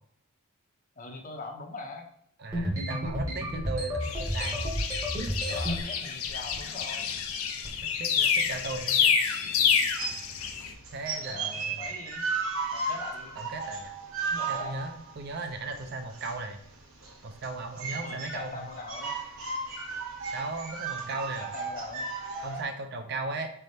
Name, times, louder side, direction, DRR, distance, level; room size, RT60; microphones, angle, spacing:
voice 1, 1.0-2.1 5.5-7.1 11.1-12.2 12.7-13.4 14.2-14.8 17.9-19.1 21.0-21.2 21.5-22.2, left 2 dB, 40° left, 2 dB, 0.6 m, -42 dB
voice 2, 2.4-4.8 8.0-9.2 10.9-11.9 13.4-14.0 14.5-16.6 17.2-18.7 20.3-21.5 22.4-23.5, right 3 dB, 50° right, 6 dB, 0.5 m, -37 dB
sound 1, 2.5-5.8 6.3-6.8 7.0-7.3 7.6-7.9 8.5-8.8, equal, 15° right, 0.8 m, -32 dB
sound 2, 4.0-10.7, left 7 dB, 80° left, 0.4 m, -28 dB
sound 3, 10.0-22.6, right 4 dB, 75° right, 0.9 m, -35 dB
4.3 x 3.4 x 2.7 m, 0.67 s
head